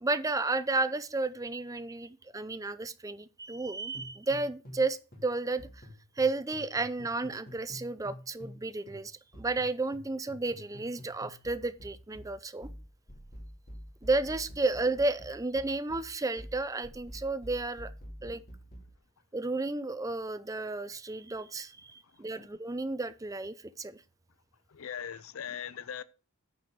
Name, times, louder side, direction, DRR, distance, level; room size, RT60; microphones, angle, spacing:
voice 1, 0.0-5.6 6.2-12.7 14.0-17.9 18.2-18.4 19.3-24.0, right 3 dB, 15° right, 0.5 m, -32 dB
sound 1, 3.9-4.9 5.1-8.6 8.9-18.9, equal, 40° left, 2.5 m, -48 dB
voice 2, 24.7-26.0, left 8 dB, 70° left, 0.5 m, -39 dB
9.3 x 4.9 x 5.9 m
head